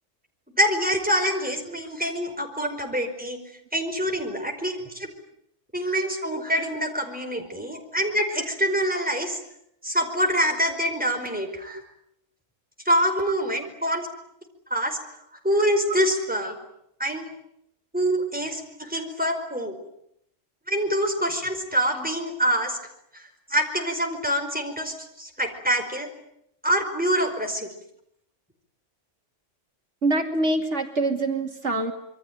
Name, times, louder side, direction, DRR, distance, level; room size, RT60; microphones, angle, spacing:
voice 1, 0.5-3.4 3.7-5.1 5.7-9.4 9.8-11.8 12.8-14.1 14.7-15.0 15.4-16.6 17.0-17.3 17.9-19.8 20.7-22.8 23.1-26.1 26.6-27.7, equal, 5° right, 3 dB, 5.0 m, -25 dB
voice 2, 30.0-31.9, right 2 dB, 70° right, 5 dB, 2.8 m, -25 dB
27.0 x 23.0 x 9.5 m, 0.76 s
omnidirectional pair, 1.3 m